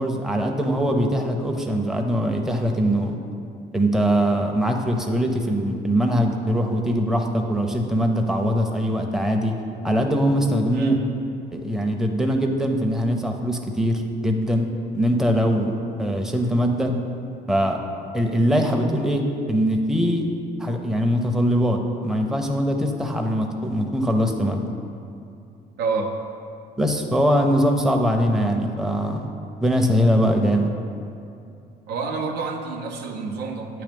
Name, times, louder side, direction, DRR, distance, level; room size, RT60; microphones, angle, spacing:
voice 1, 0.0-3.2 3.7-9.5 9.8-11.0 11.5-14.7 14.9-15.7 16.0-16.9 17.5-17.8 18.1-19.2 19.5-20.3 20.6-24.6 26.8-29.3 29.6-30.7, equal, 5° right, 2 dB, 0.5 m, -22 dB
voice 2, 10.7-11.0 25.8-26.2 31.9-33.8, right 4 dB, 90° right, 3 dB, 0.7 m, -28 dB
8.6 x 3.0 x 5.2 m, 2.5 s
cardioid pair, 110°, 17 cm